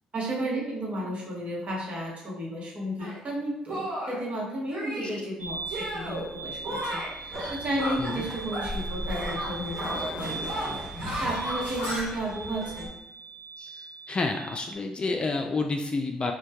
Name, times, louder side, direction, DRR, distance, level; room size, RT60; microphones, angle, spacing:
voice 1, 0.1-10.8 11.2-12.9, right 1 dB, 45° right, -3 dB, 0.9 m, -33 dB
Shatter, 3.0-3.2 3.7-4.2 4.7-5.3 5.7-6.3 6.6-8.8 9.1-12.0, equal, 60° right, 1.1 m, -34 dB
sound 1, 5.4-14.7, right 4 dB, 80° right, 0.6 m, -40 dB
sound 2, 7.3-12.9, equal, 5° right, 0.7 m, -40 dB
voice 2, 13.6-16.3, left 3 dB, 35° left, 4 dB, 0.3 m, -30 dB
2.2 x 2.1 x 2.7 m, 0.94 s
hypercardioid pair, 50°, 3 cm